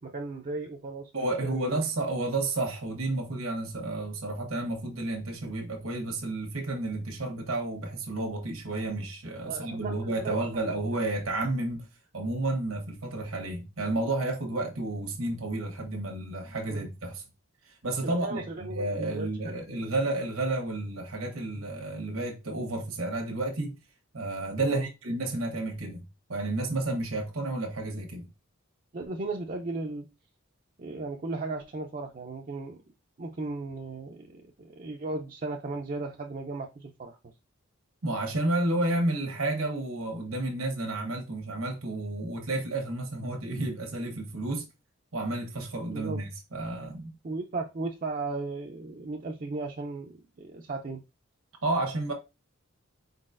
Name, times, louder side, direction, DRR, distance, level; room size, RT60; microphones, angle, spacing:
voice 1, 0.0-1.1 1.4-1.8 9.4-10.4 16.7-16.9 18.0-19.6 24.6-24.9 28.9-30.1 30.8-32.8 33.2-37.2 45.9-46.2 47.2-51.0, right 3 dB, 40° right, 0.4 m, -36 dB
voice 2, 1.1-11.9 12.1-17.2 17.6-23.8 24.1-26.0 26.3-28.3 38.0-44.7 45.1-47.1 51.6-52.1, right 2 dB, 80° right, 1.1 m, -31 dB
4.7 x 3.9 x 2.4 m
head